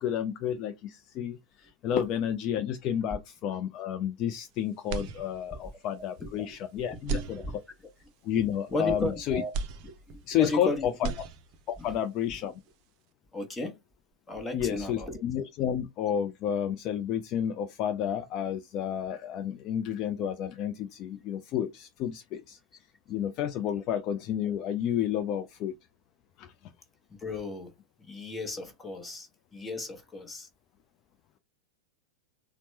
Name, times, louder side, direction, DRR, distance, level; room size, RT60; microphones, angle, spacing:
voice 1, 0.0-7.4 8.2-9.4 10.3-10.9 11.7-12.5 14.5-22.6 23.1-25.7 26.4-26.5, left 9 dB, 40° left, 0.4 m, -31 dB
sound 1, 4.9-5.8 6.2-6.3 7.0-8.0 9.5-10.6 10.9-11.8, right 5 dB, 40° right, 0.5 m, -36 dB
voice 2, 6.9-7.5 8.7-9.5 9.8-11.1 11.8-11.9 13.3-13.7 14.3-15.2 27.2-27.7 28.0-30.5, left 2 dB, 10° left, 1.1 m, -35 dB
4.1 x 2.0 x 3.1 m
figure-of-eight pair, 90°, 0 cm